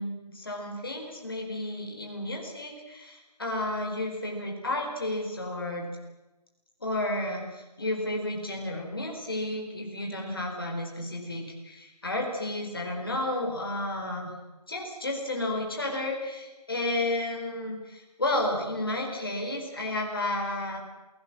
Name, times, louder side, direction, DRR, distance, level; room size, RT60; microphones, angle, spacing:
voice 1, 0.0-5.9 6.8-14.3 14.7-20.8, left 1 dB, 35° left, 0 dB, 4.7 m, -32 dB
27.5 x 18.0 x 7.6 m, 1.1 s
figure-of-eight pair, 180°, 21 cm